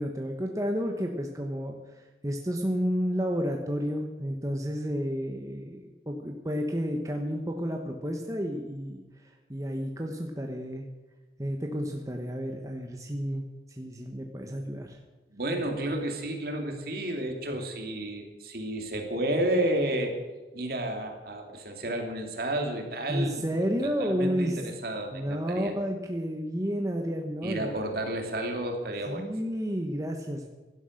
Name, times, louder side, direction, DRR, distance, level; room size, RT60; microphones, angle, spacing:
voice 1, 0.0-9.0 9.5-10.9 11.4-15.0 23.1-24.7 25.1-27.8 29.1-30.4, equal, 20° right, 2 dB, 1.2 m, -31 dB
voice 2, 15.3-20.1 20.5-23.4 23.8-25.7 27.4-29.3, right 1 dB, 55° right, 3 dB, 2.7 m, -31 dB
16.0 x 11.5 x 6.6 m, 1.2 s
head